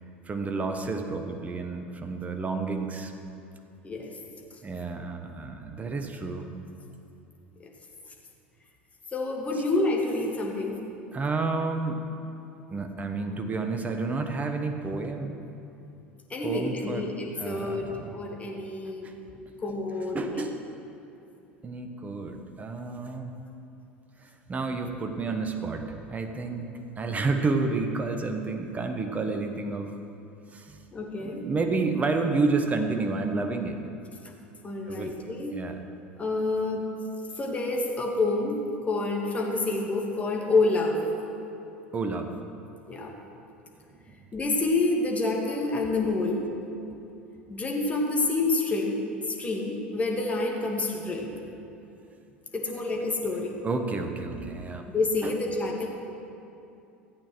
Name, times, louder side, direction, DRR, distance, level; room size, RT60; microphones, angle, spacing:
voice 1, 0.3-3.1 4.6-6.5 11.1-12.1 12.7-15.4 16.4-17.1 17.4-18.2 19.0-19.1 20.1-20.5 21.6-23.3 24.2-26.7 27.0-29.9 30.5-30.8 31.2-33.8 34.9-35.1 35.5-35.8 41.9-42.3 43.9-44.2 46.9-47.0 53.6-54.9 55.2-55.4, right 3 dB, 25° right, 5 dB, 1.3 m, -30 dB
voice 2, 9.1-10.8 16.3-19.1 19.6-20.4 30.9-31.5 34.6-35.6 36.2-36.9 37.4-38.6 38.9-41.0 42.9-43.1 44.3-46.5 47.5-49.0 49.3-51.3 52.5-53.6 54.9-55.9, left 2 dB, 20° left, 0 dB, 2.1 m, -28 dB
14.0 x 8.8 x 6.2 m, 2.8 s
figure-of-eight pair, 75°, 6 cm